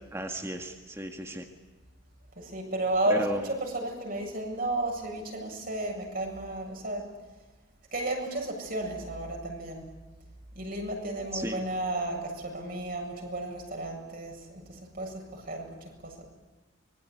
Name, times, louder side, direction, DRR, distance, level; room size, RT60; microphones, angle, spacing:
voice 1, 0.1-1.5 3.1-3.5 11.3-11.6, right 1 dB, 15° right, 4 dB, 1.8 m, -34 dB
voice 2, 2.4-7.0 7.9-9.9 10.5-16.3, right 1 dB, 45° right, 2 dB, 7.7 m, -33 dB
25.5 x 22.5 x 9.9 m, 1.2 s
head